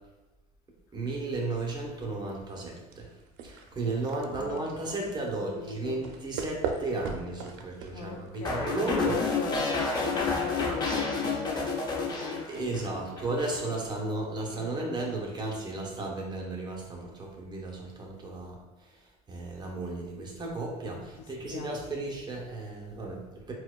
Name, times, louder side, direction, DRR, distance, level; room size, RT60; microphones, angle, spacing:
voice 1, 0.9-3.1 3.4-9.2 12.5-18.9 19.3-23.5, right 2 dB, 25° right, -1 dB, 0.7 m, -34 dB
sound 1, 2.9-8.5, right 5 dB, 80° right, 0.5 m, -39 dB
voice 2, 4.3-5.0 5.3-6.0 7.9-13.7 14.6-15.2 20.9-22.1, left 6 dB, 65° left, 5 dB, 0.4 m, -39 dB
sound 2, 8.4-12.9 13.2-13.6, left 4 dB, 25° left, 0.6 m, -30 dB
4.3 x 2.2 x 2.3 m, 1.1 s
supercardioid pair, 115°, 18 cm